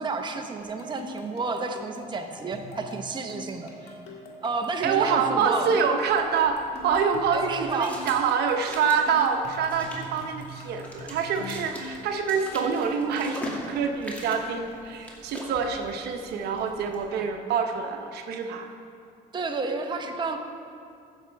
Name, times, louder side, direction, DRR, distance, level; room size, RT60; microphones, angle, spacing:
voice 1, 0.0-4.0 4.4-5.7 7.3-8.0 19.3-20.4, right 4 dB, 25° right, 4 dB, 0.9 m, -31 dB
sound 1, 0.6-12.9, left 2 dB, 80° left, 1.8 m, -43 dB
voice 2, 4.8-18.7, right 6 dB, 75° right, 5 dB, 0.9 m, -26 dB
sound 2, 6.0-17.1, equal, 10° left, 2.2 m, -42 dB
15.0 x 7.1 x 4.6 m, 2.5 s
cardioid pair, 110°, 17 cm